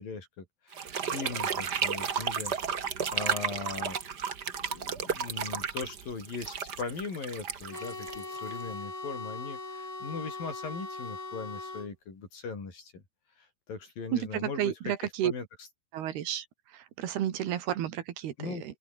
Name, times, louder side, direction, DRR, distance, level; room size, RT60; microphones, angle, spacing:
voice 1, 0.0-2.5 2.8-4.3 4.6-13.0 13.4-15.7 18.4-18.6, left 4 dB, 60° left, 7.4 m, -40 dB
sound 1, 0.7-8.7, right 7 dB, 60° right, 1.0 m, -33 dB
sound 2, 7.7-11.9, left 3 dB, 20° left, 4.9 m, -40 dB
voice 2, 14.1-15.3 15.9-16.5 17.0-18.3, right 11 dB, 80° right, 3.9 m, -31 dB
open air
omnidirectional pair, 4.5 m